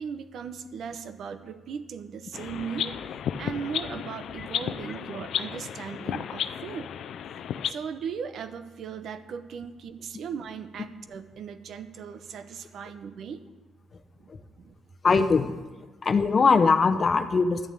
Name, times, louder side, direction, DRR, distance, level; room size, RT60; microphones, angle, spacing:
voice 1, 0.0-2.9 3.4-6.9 7.7-13.4 14.6-14.8, right 6 dB, 65° right, 11 dB, 0.8 m, -37 dB
sound 1, 2.3-7.7, left 9 dB, 70° left, 0.5 m, -33 dB
voice 2, 15.0-15.5 16.0-17.7, left 4 dB, 40° left, 8 dB, 0.8 m, -21 dB
11.5 x 7.2 x 8.4 m, 1.2 s
cardioid pair, 90°, 0 cm